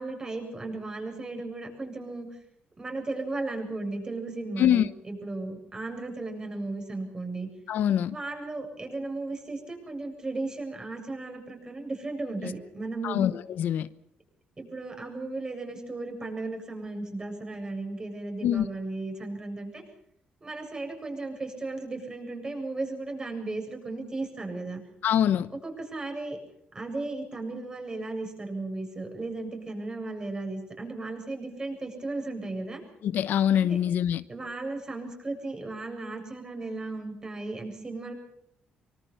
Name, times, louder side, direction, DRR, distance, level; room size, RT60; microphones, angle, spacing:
voice 1, 0.0-2.3 2.8-7.5 8.1-13.3 14.6-19.8 20.4-24.8 25.6-26.4 26.7-32.8 33.7-33.8 34.3-38.1, right 2 dB, 25° right, 7.7 m, -35 dB
voice 2, 4.6-4.9 7.7-8.1 12.4-12.5 13.0-13.9 18.4-18.7 25.0-25.5 33.0-34.2, left 10 dB, 75° left, 1.0 m, -24 dB
25.0 x 25.0 x 5.7 m
cardioid pair, 120°, 3 cm